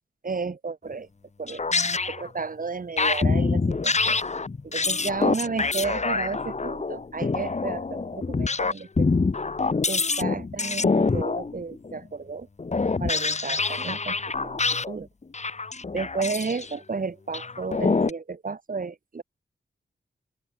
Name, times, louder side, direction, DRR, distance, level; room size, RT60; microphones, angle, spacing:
voice 1, 0.2-1.1 1.4-1.6 2.1-4.2 4.6-9.1 9.9-12.5 13.0-14.2 14.4-15.1 15.9-19.2, right 4 dB, 45° right, 6.6 m, -32 dB
sound 1, 1.5-2.3 3.0-12.0 12.6-15.0 15.2-16.7 17.3-18.1, left 4 dB, 35° left, 2.4 m, -26 dB
open air
wide cardioid pair, 120°, 19 cm